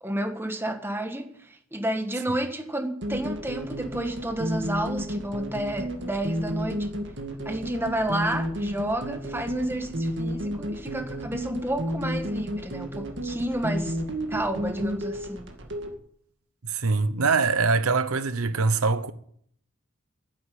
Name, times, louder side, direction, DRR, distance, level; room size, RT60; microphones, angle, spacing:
voice 1, 0.0-6.9 7.4-14.0 14.3-15.5, right 1 dB, 10° right, 1.6 m, -31 dB
sound 1, 3.0-15.9, equal, 55° right, 2.1 m, -32 dB
voice 2, 16.6-19.1, right 4 dB, 85° right, 1.0 m, -23 dB
11.5 x 10.0 x 8.5 m
head